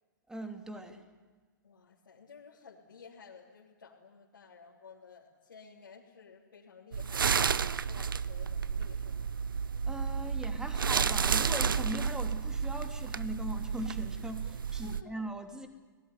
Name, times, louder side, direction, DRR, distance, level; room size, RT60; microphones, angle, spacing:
voice 1, 0.3-1.0 9.8-15.7, right 1 dB, 5° right, 5 dB, 3.1 m, -40 dB
voice 2, 1.6-7.5 7.8-9.3 14.8-15.1, left 5 dB, 85° left, -5 dB, 3.6 m, -54 dB
sound 1, 6.9-15.0, right 6 dB, 85° right, 0.7 m, -31 dB
28.0 x 19.0 x 9.9 m, 1.5 s
hypercardioid pair, 115°, 11 cm